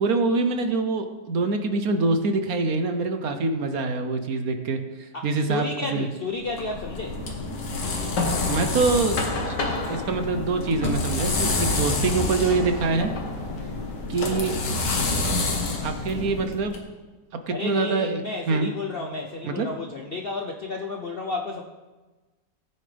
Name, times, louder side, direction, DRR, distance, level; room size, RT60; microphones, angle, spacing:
voice 1, 0.0-6.1 8.3-9.6 9.9-13.1 14.1-14.6 15.8-16.7 17.5-18.7 19.4-19.7, right 3 dB, 60° right, 7 dB, 1.2 m, -25 dB
voice 2, 5.1-7.2 17.5-21.6, left 3 dB, 55° left, 1 dB, 0.7 m, -32 dB
sound 1, 6.4-16.8, left 2 dB, 75° left, 2.1 m, -27 dB
18.5 x 8.8 x 3.4 m, 1.2 s
omnidirectional pair, 1.9 m